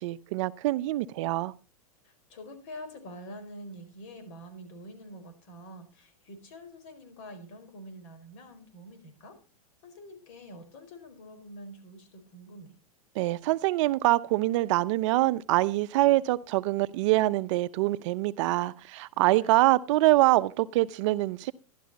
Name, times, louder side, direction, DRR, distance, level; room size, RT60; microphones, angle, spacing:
voice 1, 0.0-1.5 13.2-21.5, right 18 dB, 55° right, 0.7 m, -25 dB
voice 2, 2.0-9.4 9.8-12.7 19.1-19.6, equal, 55° left, 4.7 m, -46 dB
12.5 x 12.0 x 4.1 m
hypercardioid pair, 120°, 19 cm